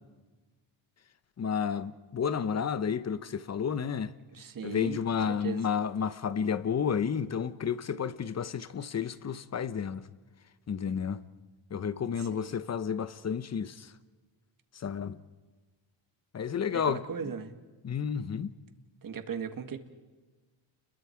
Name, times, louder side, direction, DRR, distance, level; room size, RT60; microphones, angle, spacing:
voice 1, 1.4-4.1 4.6-10.0 10.7-11.2 11.7-13.9 14.8-15.2 16.3-17.0 17.8-18.5, left 7 dB, 30° left, 1.0 m, -31 dB
voice 2, 4.3-5.0 5.3-5.6 12.1-12.5 16.7-17.6 19.0-19.8, right 7 dB, 40° right, 1.9 m, -38 dB
30.0 x 22.0 x 4.7 m
cardioid pair, 90°, 49 cm